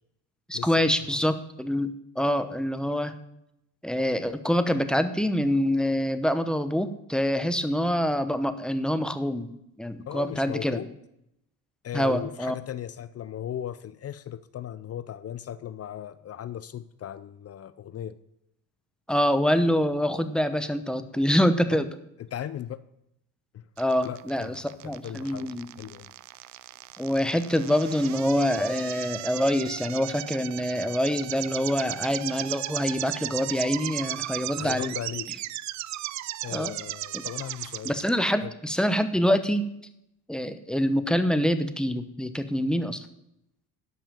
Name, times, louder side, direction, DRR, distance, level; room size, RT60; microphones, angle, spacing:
voice 1, 0.5-3.1 3.8-9.5 9.8-10.8 11.9-12.5 19.1-21.9 23.8-25.7 27.0-35.0 36.5-36.7 37.1-37.2 37.8-39.7 40.3-43.1, equal, ahead, 10 dB, 0.9 m, -25 dB
voice 2, 10.1-10.9 11.8-18.1 21.7-21.8 22.3-22.8 23.5-23.6 24.0-25.5 25.8-26.1 34.6-35.3 36.4-38.0 38.4-38.5, left 10 dB, 40° left, 15 dB, 0.5 m, -37 dB
sound 1, 23.8-38.1, right 15 dB, 50° right, 0.4 m, -36 dB
12.5 x 5.7 x 7.0 m, 0.81 s
cardioid pair, 100°, 38 cm